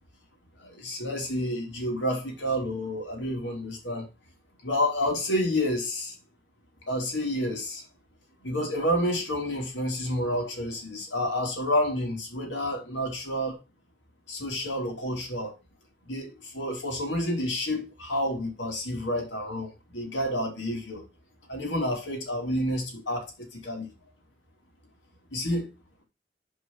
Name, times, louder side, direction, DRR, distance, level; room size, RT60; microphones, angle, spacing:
voice 1, 0.6-4.1 4.6-6.2 6.9-7.8 8.4-13.6 14.3-15.5 16.1-21.0 21.5-23.9 25.3-25.7, left 1 dB, 90° left, 2.8 m, -29 dB
5.2 x 4.8 x 5.9 m
head